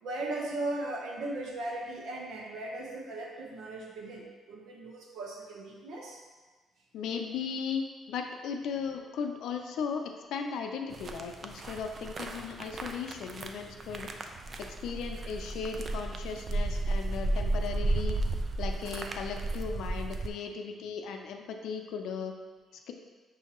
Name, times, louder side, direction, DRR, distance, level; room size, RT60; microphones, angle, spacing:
voice 1, 0.0-6.2, right 2 dB, 75° right, -1 dB, 0.9 m, -37 dB
voice 2, 6.9-14.1 14.6-18.2 18.6-22.3 22.9-23.0, left 6 dB, 80° left, 4 dB, 0.4 m, -37 dB
sound 1, 10.9-20.3, right 2 dB, 45° right, 0.4 m, -34 dB
6.4 x 2.7 x 3.0 m, 1.4 s
cardioid pair, 90°, 0 cm